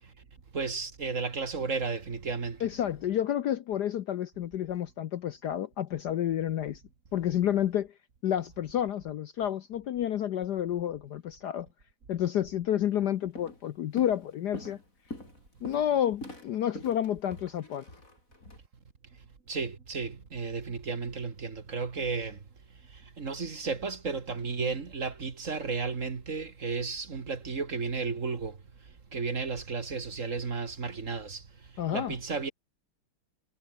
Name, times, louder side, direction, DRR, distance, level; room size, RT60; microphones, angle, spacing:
voice 1, 0.5-2.7 19.5-22.4 22.9-28.6 29.1-31.4 31.9-32.5, right 4 dB, 40° right, 2.1 m, -33 dB
voice 2, 2.6-6.8 7.1-7.9 8.2-11.7 12.1-14.8 15.6-17.8 31.8-32.1, left 10 dB, 65° left, 1.2 m, -30 dB
Walk footsteps, 12.8-13.0 13.4-13.7 14.0-18.6, left 1 dB, 40° left, 7.7 m, -44 dB
omnidirectional pair, 2.3 m